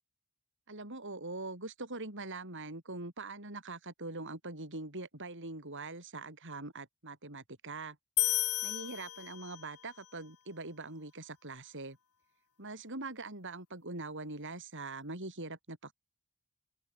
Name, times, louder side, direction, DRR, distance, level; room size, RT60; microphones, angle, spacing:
voice 1, 0.7-8.0 8.6-12.0 12.6-15.9, right 2 dB, 55° right, 7.1 m, -43 dB
sound 1, 8.2-9.8, left 16 dB, 80° left, 2.4 m, -33 dB
head